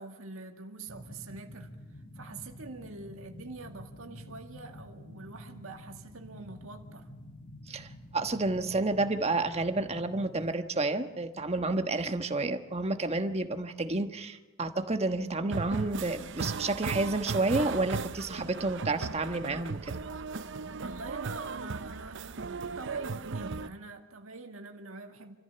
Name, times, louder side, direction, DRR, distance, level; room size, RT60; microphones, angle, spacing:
voice 1, 0.0-1.7 2.2-7.1 20.7-25.4, right 3 dB, 80° right, 2.0 m, -44 dB
sound 1, 0.9-10.5, left 1 dB, 40° left, 2.0 m, -49 dB
voice 2, 7.7-19.9, right 2 dB, 30° right, 1.3 m, -30 dB
sound 2, 15.5-23.7, right 4 dB, 60° right, 0.7 m, -37 dB
27.5 x 14.5 x 7.0 m
head